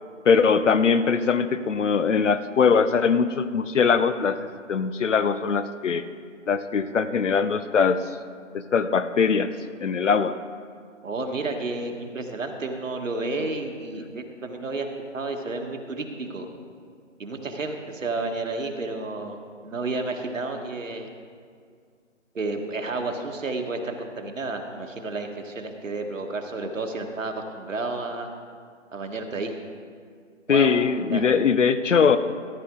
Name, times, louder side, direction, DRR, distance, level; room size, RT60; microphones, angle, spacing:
voice 1, 0.3-6.0 6.5-8.0 8.5-9.5 9.8-10.3 30.5-32.2, left 6 dB, 70° left, 12 dB, 0.8 m, -21 dB
voice 2, 11.0-14.9 15.1-16.5 17.2-21.1 22.3-28.3 28.9-29.5 30.5-30.7 31.1-31.2, right 3 dB, 80° right, 3 dB, 1.6 m, -31 dB
14.0 x 10.5 x 3.8 m, 2.1 s
hypercardioid pair, 160°, 38 cm